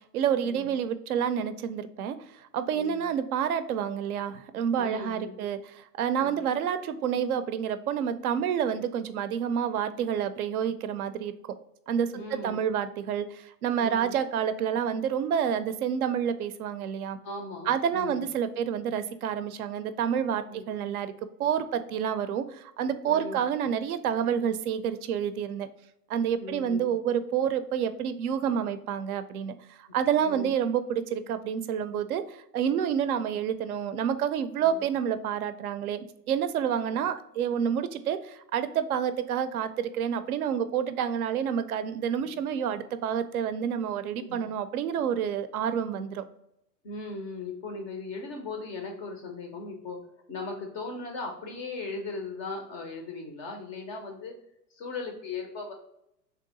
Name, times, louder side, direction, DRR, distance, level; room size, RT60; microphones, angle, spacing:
voice 1, 0.0-11.3 11.9-17.2 17.7-21.1 21.4-25.7 26.1-46.2, right 8 dB, 65° right, 12 dB, 0.5 m, -29 dB
voice 2, 2.7-3.1 4.8-5.4 6.2-6.4 12.1-12.6 13.8-14.1 17.2-18.2 20.5-20.7 23.1-23.4 26.4-26.9 30.2-30.5 34.6-34.8 42.2-42.3 44.2-44.5 46.8-54.3 54.7-55.7, left 3 dB, 20° left, 3 dB, 0.3 m, -38 dB
3.4 x 2.8 x 3.8 m, 0.79 s
hypercardioid pair, 105°, 48 cm